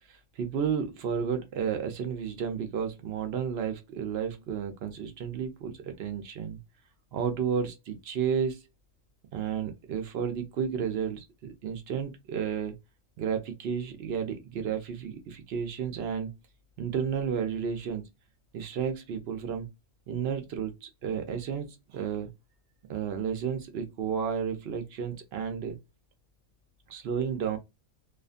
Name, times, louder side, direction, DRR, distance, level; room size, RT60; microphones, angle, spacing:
voice 1, 0.1-6.6 7.1-8.6 9.3-12.8 13.2-16.4 16.8-18.1 18.5-19.7 20.1-22.3 22.9-25.8 26.9-27.6, right 7 dB, 65° right, 0.6 m, -32 dB
2.5 x 2.4 x 2.4 m
omnidirectional pair, 1.5 m